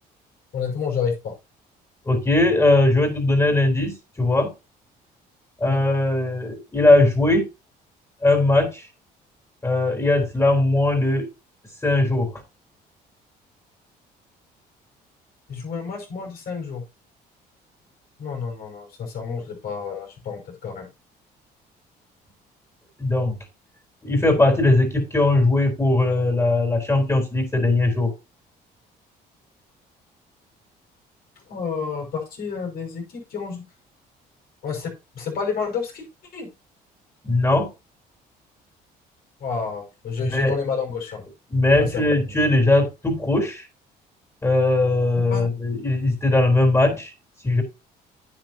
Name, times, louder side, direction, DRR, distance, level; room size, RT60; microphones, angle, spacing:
voice 1, 0.5-1.3 5.6-5.8 15.5-16.8 18.2-20.9 31.4-33.6 34.6-34.9 35.1-36.0 36.3-36.5 39.4-41.2 41.8-42.2 45.3-45.5, left 6 dB, 65° left, 2 dB, 5.5 m, -29 dB
voice 2, 2.1-4.5 5.6-7.5 8.2-8.9 9.6-11.3 11.8-12.4 23.0-23.4 24.0-28.1 37.2-37.7 40.2-40.6 41.5-43.7 44.4-47.1 47.4-47.6, left 2 dB, 15° left, 4 dB, 3.7 m, -19 dB
9.6 x 9.5 x 2.8 m, 0.27 s
cardioid pair, 110°, 17 cm